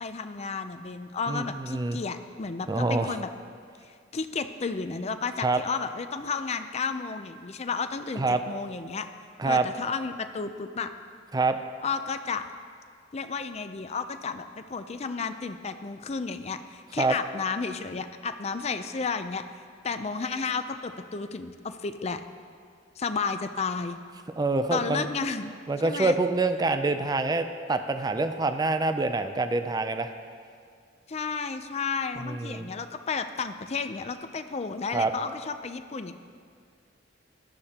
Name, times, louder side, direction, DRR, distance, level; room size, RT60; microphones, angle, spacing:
voice 1, 0.0-3.3 3.9-9.1 9.4-10.9 11.8-12.5 13.1-19.4 19.8-22.2 23.0-24.0 24.7-25.5 25.8-26.2 31.1-36.1, left 5 dB, 35° left, 9 dB, 0.5 m, -32 dB
voice 2, 1.3-2.0 2.7-3.1 5.4-5.6 8.2-8.4 9.4-9.7 11.3-11.6 17.0-17.1 24.4-25.1 25.7-30.1 32.2-32.7 34.9-35.1, right 3 dB, 20° right, 9 dB, 0.4 m, -26 dB
16.5 x 12.0 x 2.9 m, 2.1 s
head